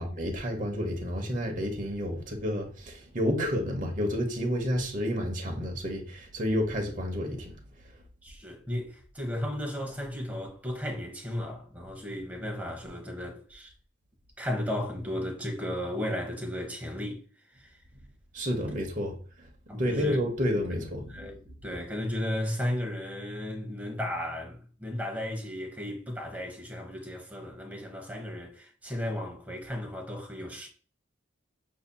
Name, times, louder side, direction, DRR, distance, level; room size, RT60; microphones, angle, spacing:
voice 1, 0.0-7.5 17.9-18.0 18.3-19.5 19.8-21.3, equal, 45° right, 1.0 m, -30 dB
voice 2, 8.2-13.7 14.4-17.2 17.5-17.7 19.7-20.2 21.1-30.7, left 1 dB, 10° right, 0.9 m, -35 dB
6.6 x 2.7 x 2.2 m
head